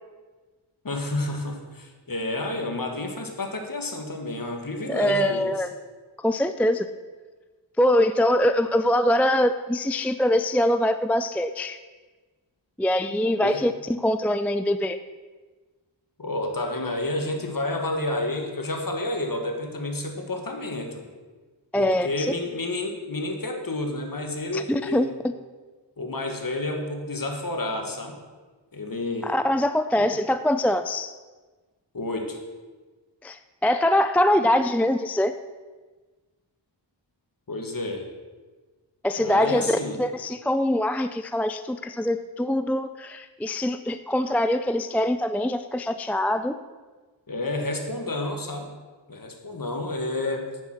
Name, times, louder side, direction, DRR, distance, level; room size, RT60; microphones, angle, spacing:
voice 1, 0.8-5.5 13.4-13.6 16.2-21.0 21.7-25.1 26.0-28.2 28.7-29.3 30.0-30.1 31.9-32.4 37.5-38.0 39.2-40.0 47.3-48.7 49.1-50.5, left 2 dB, 45° left, 3 dB, 1.8 m, -30 dB
voice 2, 4.9-5.7 6.2-6.9 7.8-11.8 12.8-15.0 21.7-22.3 24.5-25.1 29.2-31.1 33.2-35.3 39.0-46.5, left 1 dB, 5° left, 10 dB, 0.3 m, -23 dB
9.4 x 7.3 x 6.0 m, 1.3 s
wide cardioid pair, 60°, 45 cm